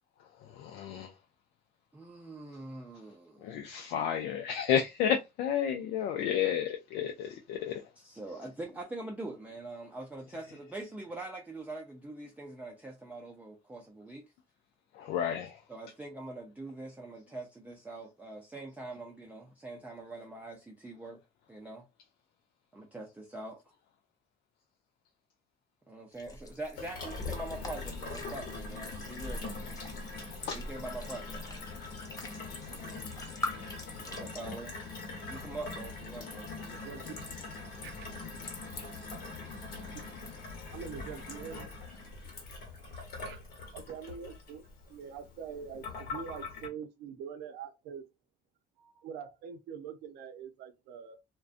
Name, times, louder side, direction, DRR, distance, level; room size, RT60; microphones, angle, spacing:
voice 1, 0.4-1.1 3.4-7.8 14.9-15.6 30.5-30.6, left 9 dB, 85° left, 0.4 m, -31 dB
voice 2, 1.9-3.5 6.4-6.5 8.0-14.2 15.7-21.2 21.5-21.9 22.7-23.6 25.9-29.5 30.5-31.5 34.1-34.7 35.3-36.5, right 2 dB, 10° right, 0.4 m, -43 dB
sound 1, 26.1-34.2, left 1 dB, 20° left, 0.8 m, -43 dB
Gurgling / Water tap faucet / Sink (filling or washing), 26.8-46.7, left 3 dB, 65° left, 1.0 m, -42 dB
voice 3, 36.6-37.3 37.8-38.1 40.2-40.3 40.7-41.7 43.2-43.4 43.7-48.1 48.8-51.2, right 7 dB, 90° right, 0.6 m, -44 dB
2.4 x 2.2 x 2.5 m
cardioid pair, 110°, 17 cm